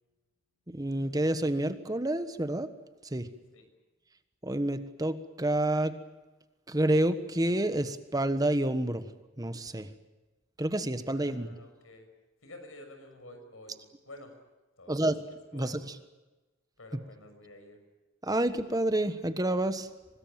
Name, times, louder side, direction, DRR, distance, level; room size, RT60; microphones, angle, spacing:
voice 1, 0.7-2.7 3.1-3.3 4.4-6.0 6.7-9.0 9.4-9.9 10.6-11.5 14.9-15.2 15.5-15.8 18.2-19.9, right 1 dB, 20° right, 11 dB, 1.4 m, -28 dB
voice 2, 11.1-12.1 12.4-14.4 14.8-15.7 16.8-17.8, left 1 dB, 90° left, 6 dB, 6.4 m, -50 dB
25.0 x 20.0 x 9.1 m, 1.1 s
head